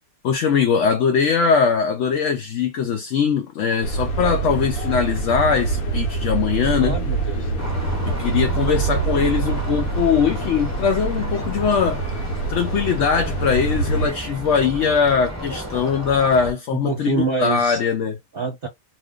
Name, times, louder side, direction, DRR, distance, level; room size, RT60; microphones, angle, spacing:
voice 1, 0.2-7.0 8.1-12.0 12.5-18.1, left 6 dB, 65° left, 0.9 m, -21 dB
sound 1, 3.8-14.1, right 3 dB, 90° left, 1.2 m, -25 dB
voice 2, 6.8-7.5 16.7-17.8 18.3-18.7, right 4 dB, 50° right, 0.8 m, -26 dB
sound 2, 7.6-16.5, right 1 dB, 15° left, 0.9 m, -33 dB
2.5 x 2.5 x 3.6 m
omnidirectional pair, 1.5 m